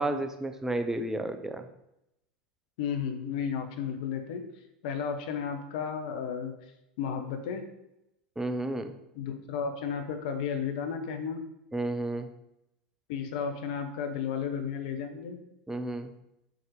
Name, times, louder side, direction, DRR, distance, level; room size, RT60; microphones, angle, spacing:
voice 1, 0.0-1.7 8.4-8.9 11.7-12.3 15.7-16.1, right 2 dB, 10° right, 8 dB, 0.8 m, -31 dB
voice 2, 2.8-4.5 4.8-6.5 7.0-7.6 9.1-11.4 13.1-15.4, left 7 dB, 55° left, 6 dB, 1.2 m, -33 dB
8.0 x 4.5 x 4.9 m, 0.86 s
figure-of-eight pair, 85°, 5 cm